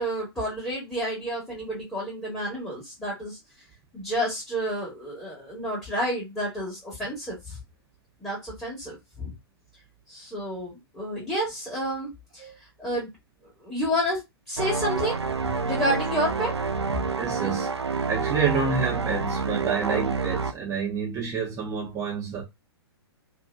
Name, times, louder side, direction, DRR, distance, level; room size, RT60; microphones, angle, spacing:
voice 1, 0.0-3.4 3.9-7.6 8.2-9.3 10.1-12.5 12.8-13.1 13.6-14.2 14.5-16.5 16.8-17.0, equal, 10° left, 1.4 m, -30 dB
sound 1, 14.6-20.5, right 4 dB, 85° right, 0.4 m, -28 dB
voice 2, 17.2-17.7 18.1-22.4, right 5 dB, 20° right, 1.0 m, -28 dB
2.8 x 2.6 x 2.3 m
figure-of-eight pair, 110°, 14 cm